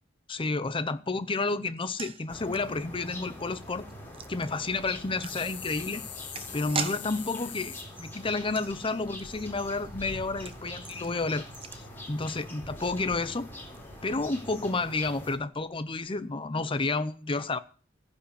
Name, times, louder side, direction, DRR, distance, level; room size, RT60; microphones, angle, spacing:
voice 1, 0.3-3.9 4.3-6.0 6.5-11.4 12.1-13.5 14.0-17.6, left 3 dB, 25° left, 0.7 m, -30 dB
sound 1, 1.7-13.0 13.2-13.3 13.6-13.8, right 6 dB, 30° right, 0.7 m, -43 dB
sound 2, 2.3-15.4, left 1 dB, 10° left, 3.9 m, -44 dB
sound 3, 5.2-7.9 9.9-10.0 10.3-10.4 10.7-10.8 11.1-12.5 12.8-14.3 14.7-14.8 15.4-15.7 16.2-16.3, left 8 dB, 65° left, 1.9 m, -43 dB
15.0 x 5.3 x 6.8 m
head